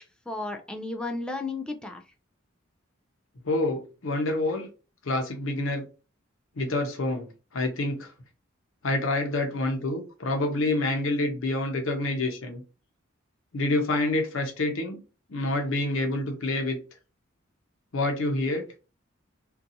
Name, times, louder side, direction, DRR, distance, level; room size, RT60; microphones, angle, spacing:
voice 1, 0.0-2.0, left 2 dB, 5° left, 3 dB, 0.3 m, -34 dB
voice 2, 3.5-4.7 5.0-5.8 6.6-8.1 8.8-12.6 13.5-15.0 15.3-16.8 17.9-18.7, left 2 dB, 75° left, 3 dB, 0.6 m, -27 dB
2.6 x 2.3 x 2.7 m, 0.33 s
head